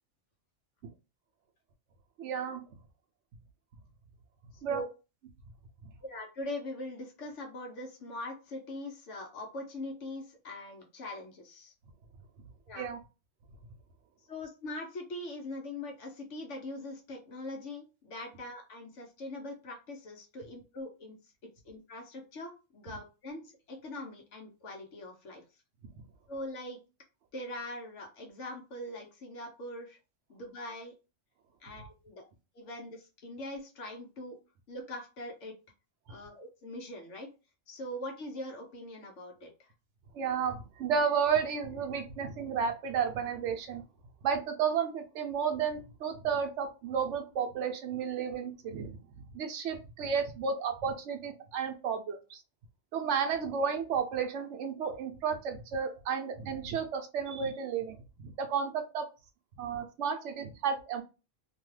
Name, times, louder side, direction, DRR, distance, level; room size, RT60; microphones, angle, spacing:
voice 1, 2.2-2.6 4.6-4.8 12.8-13.0 40.1-43.8 44.2-48.9 49.3-52.4 52.9-59.0 59.6-61.0, right 6 dB, 70° right, 6 dB, 0.9 m, -32 dB
voice 2, 4.5-4.9 6.0-11.7 12.7-12.9 14.3-21.2 21.6-25.4 26.3-26.8 27.3-30.0 30.3-30.9 31.6-32.3 32.5-34.4 34.7-35.5 36.1-37.3 37.7-39.7, left 1 dB, 70° left, 3 dB, 1.1 m, -42 dB
2.8 x 2.3 x 3.1 m, 0.30 s
omnidirectional pair, 1.3 m